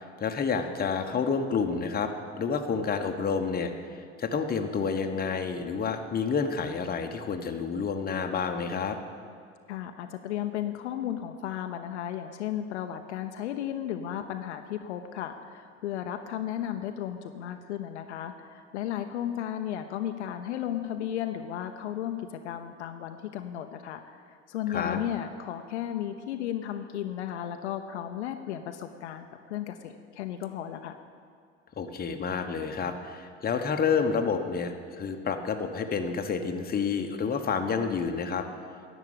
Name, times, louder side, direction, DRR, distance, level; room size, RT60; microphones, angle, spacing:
voice 1, 0.0-2.1 2.4-9.0 24.7-25.0 31.8-38.4, left 5 dB, 25° left, 5 dB, 1.1 m, -29 dB
voice 2, 9.7-30.9, left 10 dB, 70° left, 7 dB, 0.7 m, -34 dB
11.0 x 7.2 x 8.8 m, 2.3 s
figure-of-eight pair, 70°, 35 cm